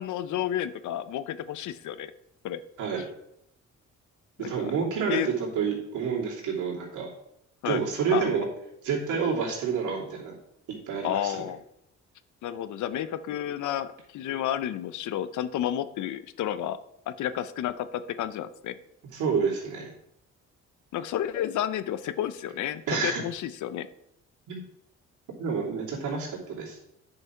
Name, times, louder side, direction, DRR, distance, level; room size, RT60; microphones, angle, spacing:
voice 1, 0.0-2.1 2.4-2.6 4.4-4.7 5.1-5.3 7.6-7.8 8.1-8.2 11.0-11.6 12.4-16.8 17.1-18.7 20.9-23.9, left 11 dB, 75° left, 13 dB, 0.7 m, -31 dB
voice 2, 4.4-7.1 7.6-8.4 8.8-10.3 10.9-11.4 19.1-19.9 22.9-23.2 24.5-24.6 25.4-26.8, right 6 dB, 80° right, -3 dB, 3.0 m, -28 dB
9.6 x 5.4 x 4.5 m, 0.78 s
cardioid pair, 90°, 30 cm